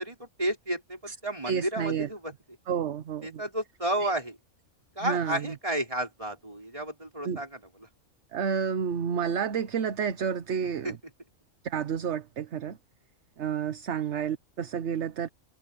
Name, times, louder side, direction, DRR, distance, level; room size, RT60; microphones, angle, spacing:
voice 1, 0.0-2.3 3.2-4.4 5.0-7.9 10.8-10.9, right 1 dB, 25° right, 5.7 m, -32 dB
voice 2, 1.5-2.1 2.7-3.4 4.0-4.1 5.0-5.5 7.2-7.4 8.3-11.0 11.6-12.8 13.4-15.3, right 7 dB, 60° right, 1.1 m, -30 dB
omnidirectional pair, 1.4 m